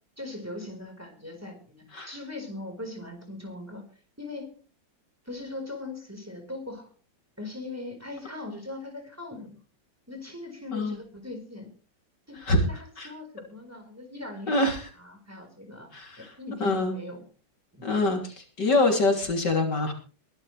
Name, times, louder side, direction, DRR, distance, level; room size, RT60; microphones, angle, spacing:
voice 1, 0.2-3.8 4.2-4.5 5.2-6.9 7.4-9.6 10.1-11.7 12.3-14.7 15.0-15.9 16.2-17.2 17.7-17.9, left 2 dB, 10° right, 3 dB, 4.5 m, -40 dB
voice 2, 14.5-14.9 15.9-16.3 16.6-17.0 17.8-19.9, left 2 dB, 65° left, 2 dB, 3.6 m, -25 dB
22.5 x 11.5 x 3.3 m, 0.38 s
omnidirectional pair, 2.0 m